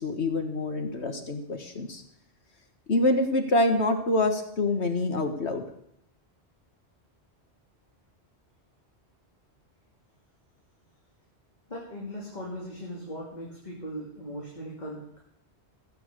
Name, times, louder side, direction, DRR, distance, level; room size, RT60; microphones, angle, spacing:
voice 1, 0.0-2.0 2.9-5.6, left 2 dB, 75° left, 5 dB, 1.9 m, -26 dB
voice 2, 11.7-15.2, equal, 40° left, -4 dB, 3.0 m, -39 dB
16.0 x 8.9 x 6.8 m, 0.71 s
omnidirectional pair, 1.1 m